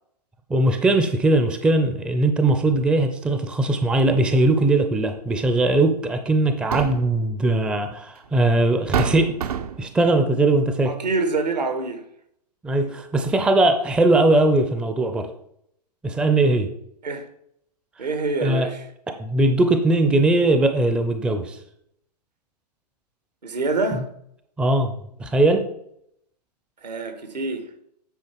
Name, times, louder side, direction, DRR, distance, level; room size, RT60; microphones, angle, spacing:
voice 1, 0.5-9.3 9.8-10.9 12.6-15.3 16.0-16.7 18.4-18.7 19.2-21.6 24.6-24.9 25.2-25.6, right 2 dB, 5° right, 0.5 m, -20 dB
sound 1, 5.3-5.5 6.4-7.2 8.3-8.4 8.9-9.9, right 8 dB, 60° right, 0.7 m, -27 dB
voice 2, 10.8-12.0 17.0-17.3 18.0-18.8 23.4-24.1 26.8-27.7, right 3 dB, 80° right, 1.6 m, -26 dB
9.0 x 4.7 x 4.6 m
figure-of-eight pair, 120°, 21 cm